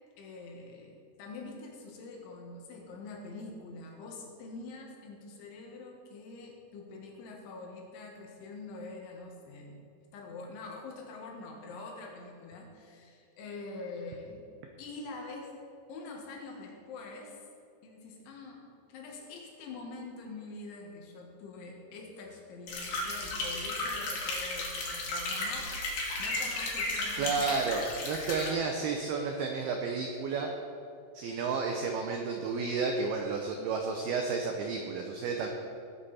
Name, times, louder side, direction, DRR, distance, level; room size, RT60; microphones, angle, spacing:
voice 1, 0.2-9.8 10.1-14.5 14.8-15.5 15.9-17.4 17.8-27.6, left 3 dB, 75° left, 0 dB, 4.1 m, -45 dB
sound 1, 22.7-28.5, left 2 dB, 55° left, 3.9 m, -34 dB
voice 2, 27.2-30.5 31.1-35.5, right 4 dB, 85° right, 2 dB, 2.2 m, -31 dB
18.5 x 8.9 x 4.3 m, 2.5 s
omnidirectional pair, 5.6 m